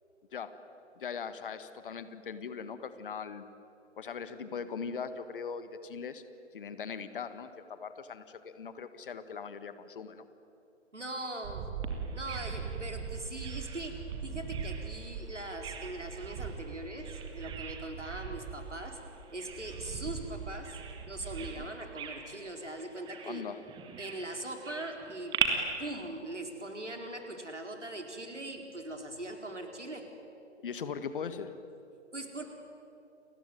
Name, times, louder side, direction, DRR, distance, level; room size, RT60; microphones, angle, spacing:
voice 1, 1.0-3.4 4.0-6.2 6.5-10.3 21.6-21.7 23.2-23.6 30.6-31.5, left 6 dB, 50° left, 11 dB, 1.7 m, -40 dB
voice 2, 10.9-11.7 12.1-19.0 19.3-23.4 24.0-25.5 25.8-30.1 32.1-32.4, right 2 dB, 80° right, 4 dB, 4.4 m, -41 dB
sound 1, 11.4-21.7, right 6 dB, 30° right, 2.1 m, -41 dB
Bird vocalization bird call bird song, 11.8-25.5, right 10 dB, 15° right, 1.9 m, -42 dB
30.0 x 21.0 x 9.4 m, 2.7 s
figure-of-eight pair, 130°, 35 cm